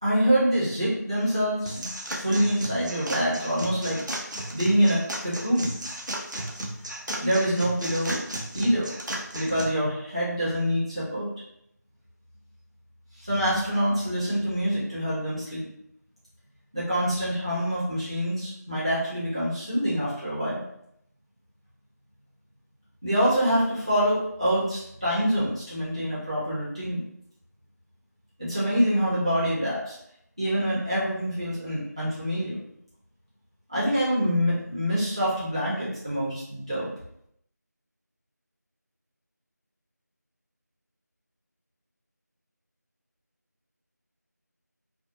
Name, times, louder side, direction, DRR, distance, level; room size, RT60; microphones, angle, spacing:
voice 1, 0.0-1.9 2.1-4.0 4.5-5.7 7.2-8.2 8.5-8.9 9.3-11.3 13.1-15.7 16.7-20.6 23.0-27.0 28.4-30.0 30.4-32.6 33.7-36.9, equal, 20° right, -11 dB, 1.0 m, -25 dB
sound 1, 1.7-9.6, right 1 dB, 85° right, 0.7 m, -35 dB
4.6 x 2.1 x 2.8 m, 0.73 s
figure-of-eight pair, 180°, 10 cm